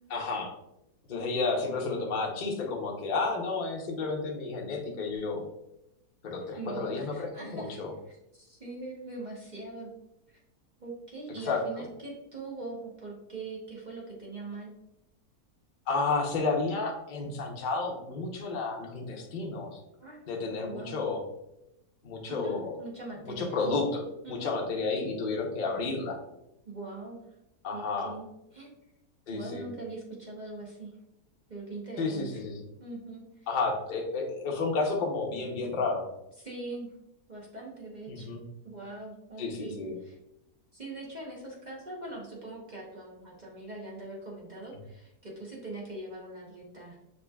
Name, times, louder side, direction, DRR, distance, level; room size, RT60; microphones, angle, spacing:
voice 1, 0.1-0.5 1.1-5.4 6.2-7.9 11.5-11.6 15.9-19.8 20.3-21.2 22.0-22.7 23.2-26.2 27.6-28.1 29.3-29.6 32.0-32.6 33.5-36.0 38.1-38.4 39.4-40.0, left 3 dB, 45° left, 0 dB, 0.7 m, -31 dB
voice 2, 6.6-7.8 8.4-9.9 10.3-10.4 10.8-14.7 20.0-20.2 20.6-21.0 22.3-23.7 24.2-24.6 26.6-27.2 27.7-28.7 29.3-30.9 31.5-32.4 32.8-33.5 36.4-36.9 37.3-38.3 38.6-40.1 40.7-47.0, right 2 dB, 35° right, -3 dB, 0.8 m, -42 dB
6.5 x 3.1 x 2.3 m, 0.85 s
omnidirectional pair, 1.7 m